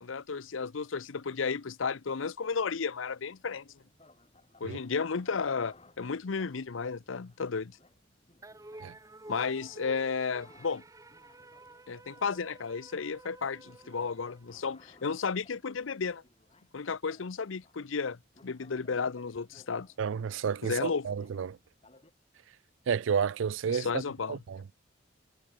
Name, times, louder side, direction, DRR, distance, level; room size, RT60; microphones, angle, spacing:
voice 1, 0.0-3.7 4.6-7.8 9.3-10.8 11.9-16.2 16.7-19.9 20.6-21.1 23.7-24.4, left 5 dB, 85° left, 0.7 m, -33 dB
sound 1, 3.3-22.1, left 2 dB, 30° left, 7.1 m, -62 dB
sound 2, 8.4-15.0, right 2 dB, 15° right, 1.6 m, -51 dB
voice 2, 20.0-21.6 22.9-24.0 24.3-24.6, right 7 dB, 75° right, 0.4 m, -31 dB
head